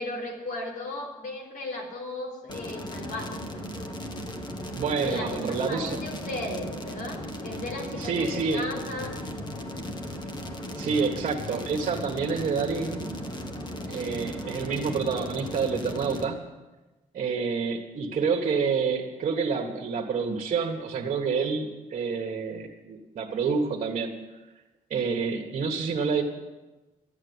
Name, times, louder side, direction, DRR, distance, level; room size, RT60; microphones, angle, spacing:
voice 1, 0.0-3.4 5.0-9.2, left 2 dB, 75° left, 0 dB, 3.7 m, -36 dB
sound 1, 2.5-16.2, equal, 30° left, 1.5 m, -36 dB
voice 2, 4.7-6.0 8.0-8.6 10.7-13.1 13.9-16.4 17.1-24.1 24.9-26.2, right 5 dB, 55° right, 0 dB, 1.6 m, -28 dB
13.5 x 8.8 x 9.7 m, 1.1 s
cardioid pair, 145°, 14 cm